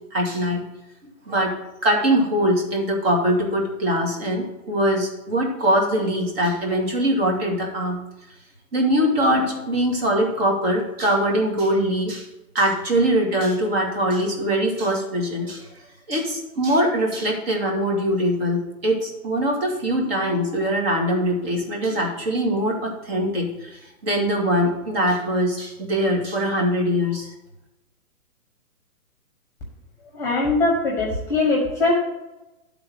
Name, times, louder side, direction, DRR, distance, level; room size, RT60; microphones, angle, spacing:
voice 1, 0.1-0.6 1.3-1.5 1.8-8.0 8.7-12.3 12.5-15.7 16.1-23.8 24.0-27.3, equal, 45° right, 0 dB, 2.4 m, -22 dB
voice 2, 30.1-32.0, left 2 dB, 5° left, -2 dB, 1.3 m, -21 dB
11.5 x 4.0 x 6.4 m, 0.99 s
hypercardioid pair, 160°, 42 cm